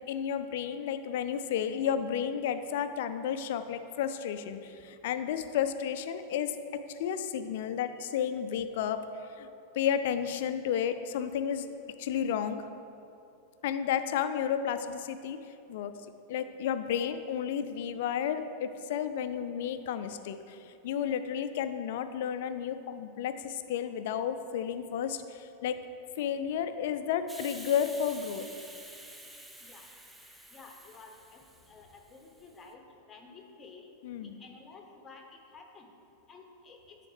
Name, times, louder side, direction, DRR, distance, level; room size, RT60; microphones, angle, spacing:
voice 1, 0.0-9.0 9.4-9.5 9.7-11.7 12.0-12.7 13.6-15.4 15.7-15.9 16.3-25.8 26.2-28.5 34.0-34.4, left 8 dB, 55° left, 10 dB, 0.3 m, -32 dB
Hiss, 27.3-32.6, right 1 dB, 5° right, 0.5 m, -49 dB
voice 2, 30.5-31.4 31.7-33.9 34.2-35.3 35.5-35.9 36.3-37.0, left 4 dB, 20° left, 2 dB, 0.9 m, -52 dB
9.4 x 4.2 x 3.2 m, 2.7 s
figure-of-eight pair, 90°, 0 cm